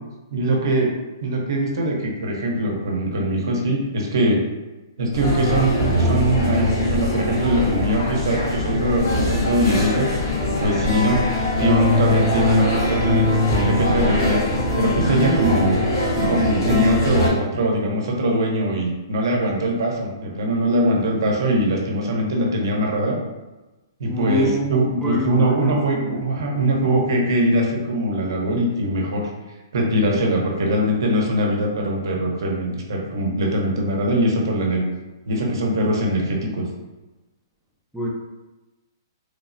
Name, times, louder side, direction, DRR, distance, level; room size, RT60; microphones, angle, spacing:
voice 1, 0.3-0.9 1.2-4.4 5.0-10.1 10.6-11.2 11.6-14.4 14.8-15.8 16.3-23.2 24.0-29.3 29.7-34.9 35.3-36.7, right 1 dB, 75° right, -1 dB, 0.7 m, -22 dB
sound 1, 5.1-17.3, left 1 dB, 70° left, 1.3 m, -21 dB
voice 2, 24.1-26.2 37.9-38.1, equal, ahead, -5 dB, 0.4 m, -26 dB
3.1 x 2.1 x 2.6 m, 1.1 s
hypercardioid pair, 155°, 2 cm